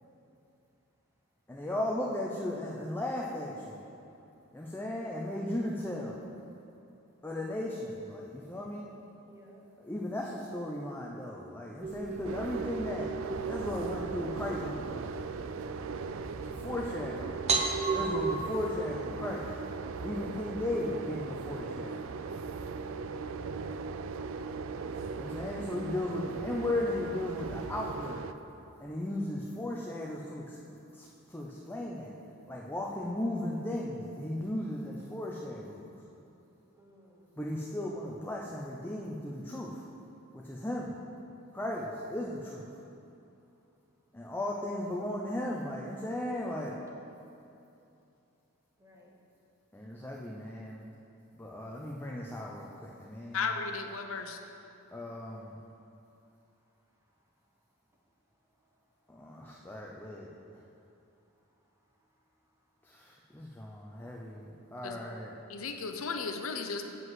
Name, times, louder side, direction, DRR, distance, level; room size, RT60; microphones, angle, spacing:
voice 1, 1.5-3.8 4.5-6.2 7.2-8.9 9.8-13.1 13.5-15.1 16.4-17.4 17.9-19.6 20.0-22.0 25.2-28.2 28.8-32.1 32.5-35.9 37.4-39.8 40.3-40.9 41.5-42.6 44.1-46.7 49.7-50.9 51.3-53.5 54.9-55.6 59.1-60.3 62.8-65.4, left 1 dB, 10° left, -3 dB, 0.6 m, -36 dB
voice 2, 9.2-9.6 36.8-37.3 44.2-44.3 48.8-49.1 59.2-59.6, equal, 15° right, -1 dB, 1.1 m, -58 dB
sound 1, 11.8-18.3, right 5 dB, 35° right, 0.7 m, -35 dB
sound 2, 12.2-28.3, right 4 dB, 70° right, 0.4 m, -38 dB
voice 3, 53.3-54.4 64.8-65.0 65.5-66.8, left 5 dB, 80° left, 6 dB, 0.7 m, -35 dB
7.9 x 5.3 x 7.4 m, 2.7 s
head